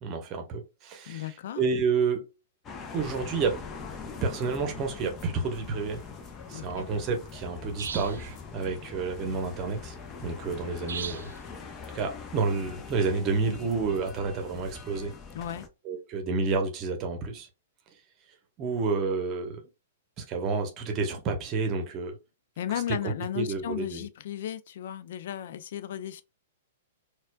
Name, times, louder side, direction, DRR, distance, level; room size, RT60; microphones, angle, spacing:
voice 1, 0.0-1.3 1.6-2.3 2.9-3.6 4.2-6.0 6.5-10.0 10.2-11.3 11.9-15.1 15.8-17.5 18.6-19.6 20.2-22.2 22.9-24.1, right 4 dB, 35° right, 0.9 m, -30 dB
voice 2, 1.1-1.6 6.5-6.9 15.3-15.7 22.6-26.2, left 11 dB, 60° left, 0.4 m, -35 dB
sound 1, 2.6-15.7, left 5 dB, 25° left, 0.7 m, -42 dB
sound 2, 7.8-8.3 10.9-11.4, right 6 dB, 70° right, 0.4 m, -36 dB
4.2 x 2.4 x 2.3 m
hypercardioid pair, 110°, 0 cm